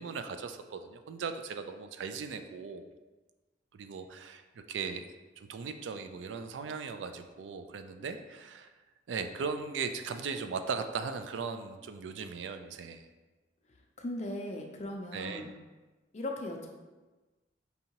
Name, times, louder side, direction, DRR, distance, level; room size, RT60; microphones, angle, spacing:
voice 1, 0.0-2.9 3.7-4.4 4.7-5.0 5.4-8.7 9.1-13.1 15.1-15.5, right 5 dB, 85° right, 8 dB, 0.3 m, -38 dB
voice 2, 14.0-15.5 16.1-16.7, left 1 dB, 40° left, 2 dB, 0.5 m, -38 dB
5.3 x 2.8 x 2.9 m, 1.2 s
head